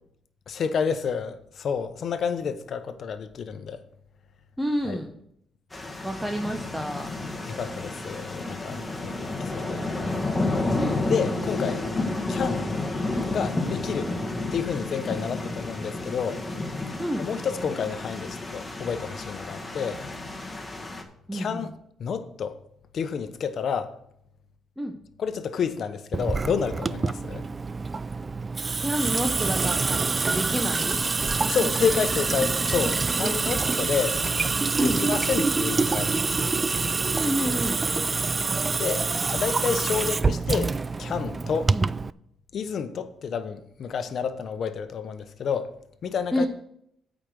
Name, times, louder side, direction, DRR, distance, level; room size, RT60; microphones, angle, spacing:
voice 1, 0.5-3.8 4.8-5.0 7.5-9.8 11.1-11.8 12.3-12.6 13.3-14.1 14.5-16.4 17.2-20.0 21.3-21.7 22.0-22.6 22.9-23.9 25.2-27.4 31.5-34.2 34.8-36.5 38.8-39.0 39.3-41.7 42.5-45.7 46.0-46.5, left 6 dB, 60° left, 0.9 m, -29 dB
voice 2, 4.6-5.1 6.0-7.1 10.8-11.2 17.0-17.2 21.3-21.7 24.8-25.0 28.8-31.0 33.2-33.6 34.8-35.0 37.1-37.8 41.7-41.9 46.3-46.5, equal, 5° right, 1.0 m, -29 dB
sound 1, 5.7-21.0, left 2 dB, 15° left, 1.6 m, -31 dB
Water tap faucet / Sink (filling or washing) / Drip, 26.1-42.1, right 4 dB, 30° right, 0.3 m, -26 dB
8.6 x 5.1 x 7.8 m
cardioid pair, 90°, 0 cm